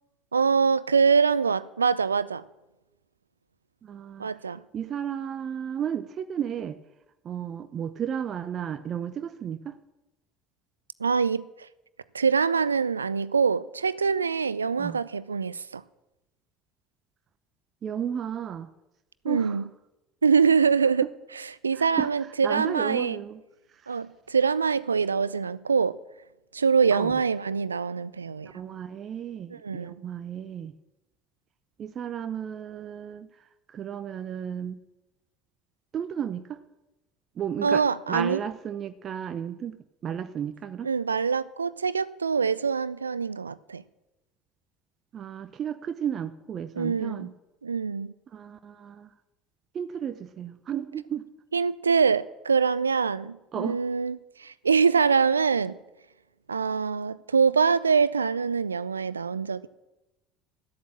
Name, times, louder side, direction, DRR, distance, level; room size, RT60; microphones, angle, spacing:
voice 1, 0.3-2.4 4.2-4.6 11.0-11.5 12.1-15.8 19.2-19.7 20.2-23.2 23.9-26.0 26.5-28.5 29.5-29.9 37.6-38.4 40.8-43.8 46.7-47.3 47.6-48.1 51.5-55.8 56.5-59.7, right 5 dB, 85° right, 0.4 m, -24 dB
voice 2, 3.8-4.3 4.7-6.8 7.2-9.8 14.8-15.0 17.8-18.7 19.2-19.6 20.4-20.5 21.8-22.1 22.4-23.4 26.9-27.1 28.4-30.7 31.8-33.3 33.7-34.8 35.9-36.6 37.4-37.8 38.1-39.8 40.0-40.9 45.1-47.3 48.3-49.1 49.7-51.3 53.5-53.8, right 8 dB, 40° right, 0.8 m, -33 dB
14.0 x 8.4 x 7.4 m
figure-of-eight pair, 65°, 0 cm